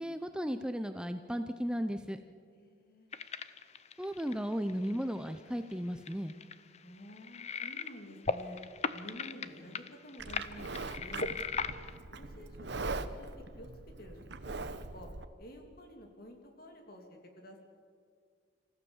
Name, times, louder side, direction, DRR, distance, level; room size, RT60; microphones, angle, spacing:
voice 1, 0.0-2.2 4.0-6.3, equal, 5° right, 8 dB, 0.6 m, -35 dB
voice 2, 2.5-3.1 6.8-8.6 8.9-11.3 12.1-13.7 14.0-14.2 14.4-14.7 14.9-15.1 15.4-17.6, equal, 50° left, 3 dB, 2.9 m, -50 dB
sound 1, 3.1-5.4 5.7-5.8 6.1-8.0 8.2-12.0, left 5 dB, 35° left, 0.7 m, -37 dB
Livestock farm animals working animals, 10.2-15.2, right 3 dB, 60° right, 0.9 m, -41 dB
27.5 x 15.0 x 7.2 m, 2.1 s
head